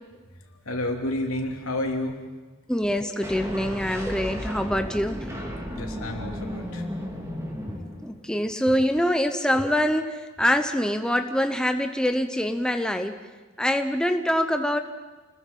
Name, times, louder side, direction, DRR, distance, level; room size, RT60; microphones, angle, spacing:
voice 1, 0.5-2.2 5.7-6.9, left 1 dB, 80° left, 2 dB, 3.1 m, -30 dB
voice 2, 2.7-5.3 8.0-13.2 13.6-14.8, equal, 5° left, 6 dB, 0.8 m, -24 dB
sound 1, 3.2-8.4, equal, 15° right, 2.8 m, -34 dB
29.0 x 20.5 x 5.4 m, 1.3 s
head